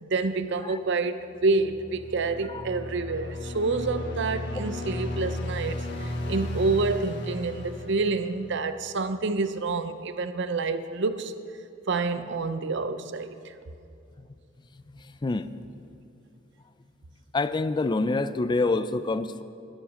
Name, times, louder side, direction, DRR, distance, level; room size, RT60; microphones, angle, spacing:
voice 1, 0.0-11.3 11.9-13.5, right 3 dB, 65° right, 11 dB, 0.6 m, -28 dB
sound 1, 1.4-8.7, left 1 dB, 60° left, 1.6 m, -35 dB
voice 2, 17.3-19.4, left 3 dB, 25° left, 13 dB, 0.4 m, -26 dB
11.5 x 10.0 x 6.3 m, 2.6 s
head